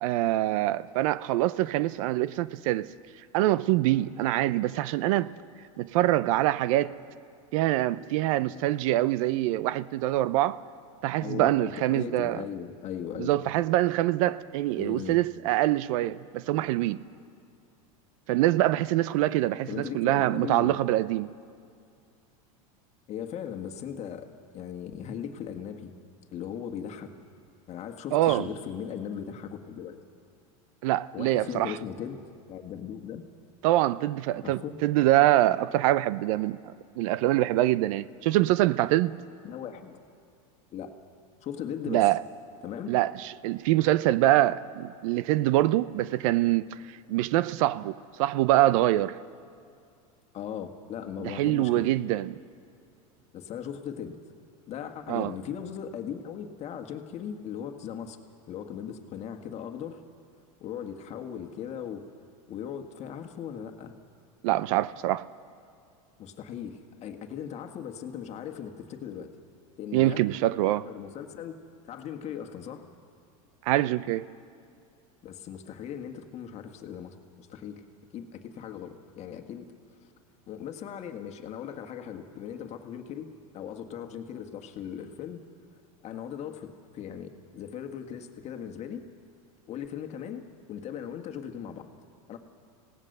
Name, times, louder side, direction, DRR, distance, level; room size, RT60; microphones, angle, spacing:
voice 1, 0.0-2.9 3.3-5.3 5.8-6.9 7.5-10.6 11.0-12.4 13.2-17.0 18.3-21.3 28.1-28.5 30.8-31.8 33.6-39.2 41.9-42.2 42.9-46.8 47.1-49.2 51.2-52.4 55.1-55.3 64.4-65.3 69.9-70.8 73.7-74.2, right 15 dB, 65° right, 0.6 m, -25 dB
voice 2, 11.2-13.3 14.8-15.2 19.7-20.8 23.1-24.3 24.5-25.9 26.3-27.1 27.7-30.0 31.1-32.2 32.5-33.2 34.4-34.8 39.4-40.0 40.7-40.9 41.4-42.1 42.6-42.9 50.3-51.9 53.3-54.2 54.7-58.2 58.5-60.0 60.6-62.0 62.5-63.9 66.2-69.3 69.8-70.2 70.6-71.6 71.8-72.8 75.2-77.8 78.1-79.7 80.5-83.3 83.5-85.4 86.0-89.0 89.7-91.9 92.3-92.4, left 8 dB, 35° left, 1.6 m, -38 dB
26.0 x 17.5 x 6.7 m
supercardioid pair, 125°, 18 cm